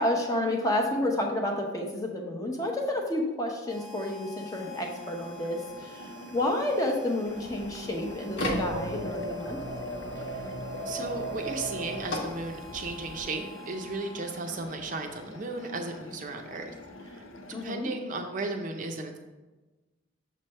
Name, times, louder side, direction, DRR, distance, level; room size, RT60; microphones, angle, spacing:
voice 1, 0.0-9.6 17.5-17.9, left 1 dB, 20° left, 1 dB, 0.7 m, -30 dB
Harmonica, 3.6-14.7, left 1 dB, 10° right, 1.0 m, -49 dB
sound 1, 4.5-17.6, left 2 dB, 90° left, 0.6 m, -47 dB
sound 2, 7.3-13.3, equal, 65° left, 1.2 m, -35 dB
voice 2, 10.2-10.5 10.8-16.8 17.0-19.2, right 3 dB, 40° right, 4 dB, 0.5 m, -35 dB
6.5 x 3.3 x 5.4 m, 1.1 s
head